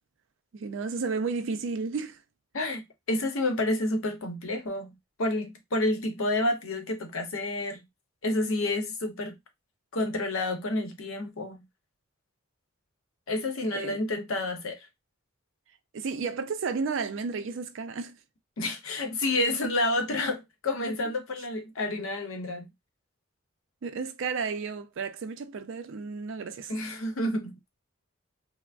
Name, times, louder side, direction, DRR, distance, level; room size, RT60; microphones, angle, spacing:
voice 1, 0.5-2.2 13.7-14.0 15.9-18.2 23.8-26.8, right 4 dB, 60° right, 0.4 m, -32 dB
voice 2, 3.1-4.9 5.2-7.8 8.2-9.3 9.9-11.6 13.3-14.9 18.6-22.7 26.7-27.5, left 2 dB, 80° left, 0.7 m, -29 dB
3.3 x 2.0 x 2.4 m
head